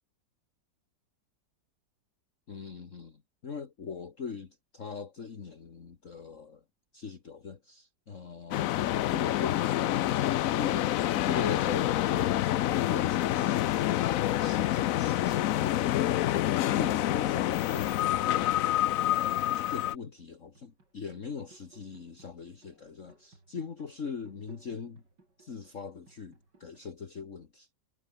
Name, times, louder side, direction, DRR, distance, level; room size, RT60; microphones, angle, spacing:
voice 1, 2.5-6.6 6.9-25.0 25.4-27.7, left 5 dB, 45° left, 2.0 m, -41 dB
sound 1, 8.5-20.0, left 13 dB, 75° left, 0.8 m, -27 dB
sound 2, 20.0-26.8, right 2 dB, 65° right, 6.4 m, -62 dB
omnidirectional pair, 2.0 m